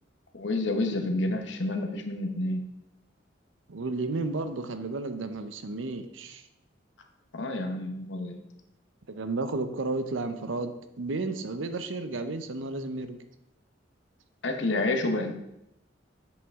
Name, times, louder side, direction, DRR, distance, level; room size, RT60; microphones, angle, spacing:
voice 1, 0.3-2.7 7.3-8.4 14.4-15.3, left 2 dB, 75° left, 4 dB, 1.0 m, -29 dB
voice 2, 3.7-6.4 9.1-10.7 11.0-13.2, right 3 dB, 85° right, 9 dB, 0.7 m, -32 dB
8.1 x 6.4 x 3.6 m, 0.84 s
head